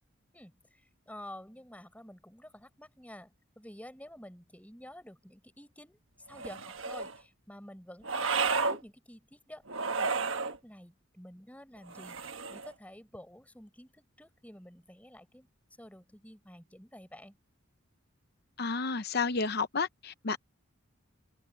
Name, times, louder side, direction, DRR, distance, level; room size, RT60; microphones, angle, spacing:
voice 1, 0.3-6.0 6.3-9.6 10.0-15.5 15.8-17.4, left 1 dB, 5° left, 5.1 m, -50 dB
sound 1, 6.3-7.2 8.0-8.8 9.7-10.6 11.9-12.7, right 4 dB, 65° right, 1.2 m, -32 dB
voice 2, 18.6-20.4, left 4 dB, 50° left, 0.7 m, -31 dB
open air
head